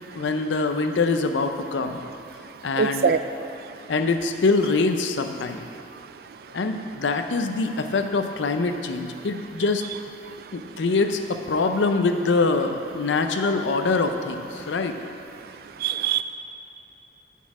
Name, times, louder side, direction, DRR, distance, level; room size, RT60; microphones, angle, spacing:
voice 1, 0.1-2.0 2.6-3.1 3.9-5.6 6.5-9.8 10.5-15.0, left 3 dB, 85° left, 7 dB, 0.5 m, -24 dB
voice 2, 2.8-3.2 15.8-16.2, right 7 dB, 55° right, 10 dB, 0.3 m, -22 dB
6.3 x 5.6 x 7.1 m, 2.9 s
head